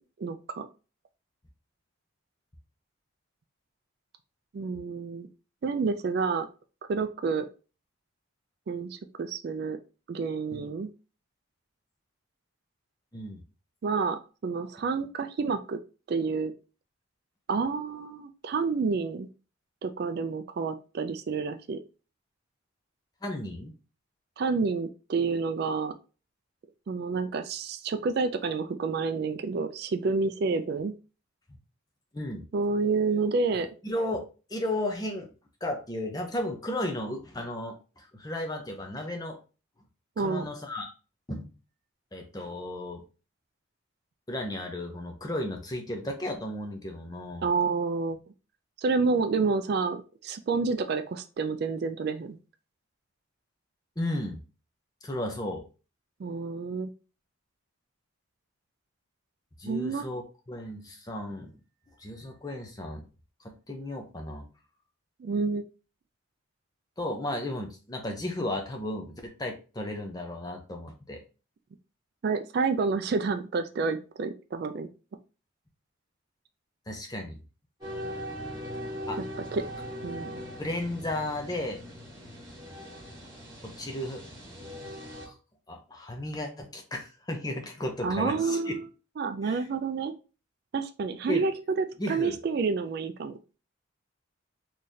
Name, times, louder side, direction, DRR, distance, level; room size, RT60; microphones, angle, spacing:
voice 1, 0.2-0.7 4.5-5.3 5.6-6.5 6.9-7.5 8.7-9.8 10.1-10.9 13.8-15.8 16.1-16.5 17.5-19.3 19.8-21.8 24.4-25.9 26.9-30.9 32.5-33.7 40.2-40.4 47.4-48.2 48.8-52.4 56.2-56.9 59.7-60.0 65.2-65.6 72.2-74.9 79.5-79.6 80.0-80.4 88.0-88.8 89.2-90.1 90.7-91.5 91.8-93.3, right 4 dB, 50° right, 9 dB, 0.3 m, -29 dB
voice 2, 23.2-23.7 32.1-32.4 33.5-35.3 35.6-39.4 40.2-40.9 41.3-41.5 42.1-43.0 44.3-47.4 54.0-54.4 55.0-55.6 59.6-60.2 60.5-61.5 62.0-63.1 63.4-64.4 67.0-71.2 76.9-77.4 79.1-79.2 80.6-81.8 83.6-84.2 85.3-85.4 85.7-88.7 89.4-89.6 91.3-91.5 92.0-92.4, left 1 dB, 20° left, 3 dB, 0.6 m, -34 dB
sound 1, 77.8-85.3, equal, 20° right, 1.6 m, -40 dB
3.9 x 3.1 x 2.7 m, 0.33 s
head